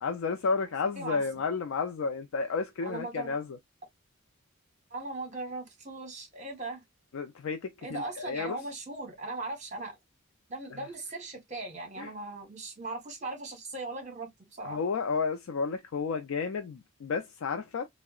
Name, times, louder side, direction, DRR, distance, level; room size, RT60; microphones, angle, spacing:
voice 1, 0.0-3.6 7.1-8.6 10.7-10.8 12.0-12.1 14.6-17.9, left 4 dB, 65° left, 0.4 m, -32 dB
voice 2, 2.8-3.4 4.9-6.8 7.8-10.0 10.5-14.8, right 2 dB, 35° right, 1.0 m, -39 dB
3.5 x 2.0 x 2.3 m
head